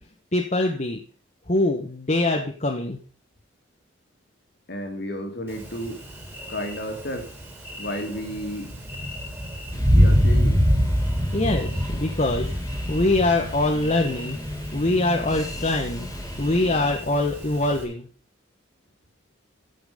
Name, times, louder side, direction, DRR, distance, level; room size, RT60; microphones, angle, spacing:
voice 1, 0.3-1.0 1.5-3.0 11.3-12.5 12.9-14.4 14.7-16.1 16.4-18.1, left 2 dB, 35° left, 2 dB, 1.3 m, -23 dB
voice 2, 4.7-6.0 6.5-7.3 7.8-8.8 9.4-9.5 9.9-10.6, equal, 55° left, 4 dB, 2.8 m, -32 dB
Thunder, 5.5-17.8, equal, 10° right, 3.3 m, -26 dB
sound 1, 9.7-17.0, left 1 dB, 15° left, 1.6 m, -38 dB
15.0 x 6.1 x 5.2 m, 0.40 s
head